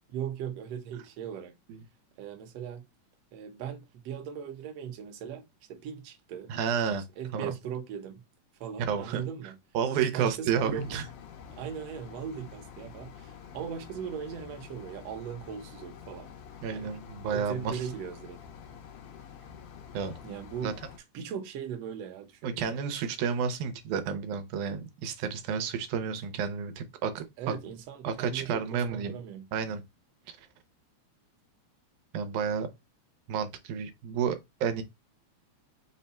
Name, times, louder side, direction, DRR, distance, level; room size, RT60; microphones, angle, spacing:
voice 1, 0.1-1.5 2.2-2.9 3.3-5.4 5.7-6.5 7.2-8.2 8.6-9.6 10.1-11.0 11.5-16.3 16.7-16.9 17.3-18.4 20.2-20.7 21.1-22.8 27.4-29.5, right 8 dB, 65° right, 1.8 m, -39 dB
voice 2, 6.5-7.0 7.3-7.5 8.9-9.2 9.7-11.0 16.6-17.8 19.9-20.1 20.6-20.7 22.4-27.5 28.0-29.2 29.5-29.8 30.3-30.4 32.1-32.7 33.3-34.8, right 7 dB, 90° right, 2.2 m, -31 dB
sound 1, 10.6-21.0, left 7 dB, 85° left, 2.3 m, -48 dB
5.4 x 2.2 x 4.1 m
omnidirectional pair, 3.4 m